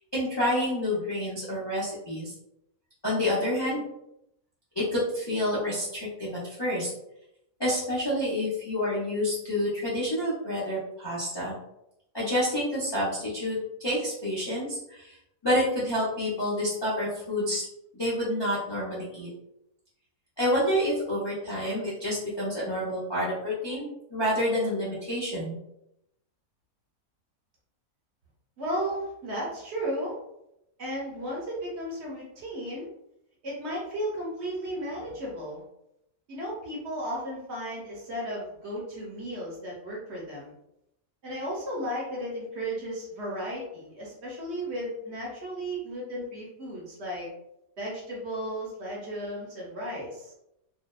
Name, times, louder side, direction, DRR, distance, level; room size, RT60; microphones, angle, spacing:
voice 1, 0.0-2.3 3.0-3.8 4.8-6.9 7.6-11.5 12.1-15.2 15.4-17.6 17.9-19.3 20.4-25.6, left 1 dB, 45° left, -8 dB, 0.3 m, -28 dB
voice 2, 28.6-30.2 30.8-32.9 33.4-35.6 36.3-40.5 41.2-47.3 47.8-50.3, equal, 55° right, -4 dB, 0.9 m, -34 dB
2.6 x 2.1 x 2.2 m, 0.82 s
omnidirectional pair, 1.5 m